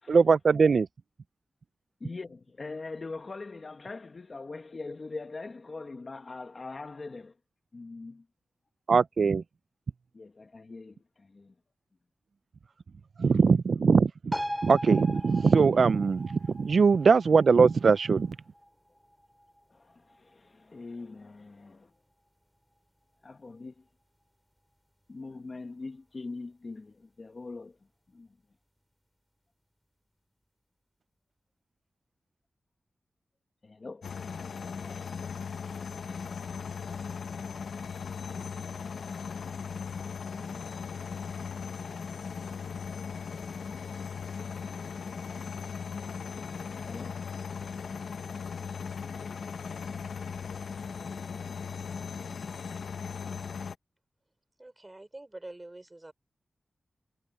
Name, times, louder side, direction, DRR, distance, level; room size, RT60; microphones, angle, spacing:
voice 1, 0.1-0.9 8.9-9.4 13.2-14.3 14.6-18.4, right 5 dB, 70° right, 0.3 m, -21 dB
voice 2, 2.0-7.4 7.7-8.3 10.1-11.5 19.7-21.9 23.2-23.9 25.1-27.8 28.1-28.3 33.6-34.1 34.8-35.2 46.8-47.2 48.5-48.6, left 3 dB, 50° left, 1.5 m, -42 dB
sound 1, 14.3-21.3 21.6-21.7, equal, ahead, 3.0 m, -41 dB
sound 2, 34.0-53.7, left 6 dB, 85° left, 0.8 m, -38 dB
voice 3, 54.6-56.1, right 2 dB, 25° right, 5.1 m, -45 dB
wide cardioid pair, 80°, 0 cm